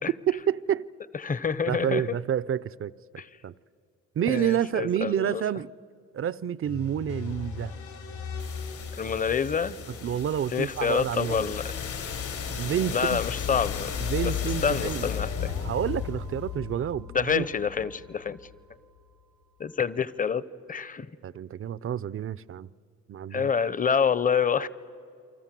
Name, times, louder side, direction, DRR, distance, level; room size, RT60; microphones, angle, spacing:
voice 1, 0.3-0.9 1.7-2.9 3.4-3.5 4.2-5.7 6.1-7.7 10.0-11.5 12.6-13.2 14.0-15.1 15.6-17.5 21.2-22.7 23.1-23.5, right 9 dB, 45° right, 0.6 m, -29 dB
voice 2, 1.2-2.0 3.2-3.3 4.2-5.4 9.0-9.8 10.5-11.6 12.9-14.0 14.2-14.3 14.6-15.5 17.1-18.4 19.6-20.4 20.7-21.1 23.3-24.7, left 6 dB, 25° left, 0.9 m, -27 dB
sound 1, 6.6-18.5, left 7 dB, 80° left, 5.3 m, -35 dB
29.0 x 24.5 x 7.6 m
cardioid pair, 90°, 30 cm